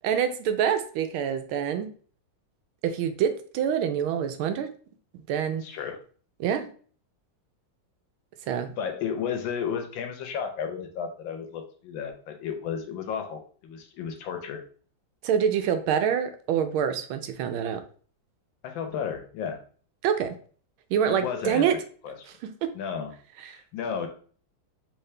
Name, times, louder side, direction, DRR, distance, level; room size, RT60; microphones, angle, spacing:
voice 1, 0.0-1.9 2.8-4.7 5.1-5.6 6.4-6.7 8.5-8.7 15.2-17.8 20.0-20.4 20.9-21.7 23.4-23.6, right 8 dB, 85° right, 8 dB, 1.5 m, -26 dB
voice 2, 5.6-6.0 8.8-14.6 18.6-19.6 21.1-21.6 22.0-22.2 22.7-23.1 23.5-24.1, left 7 dB, 75° left, 5 dB, 1.5 m, -33 dB
4.7 x 3.1 x 3.2 m, 0.43 s
omnidirectional pair, 2.2 m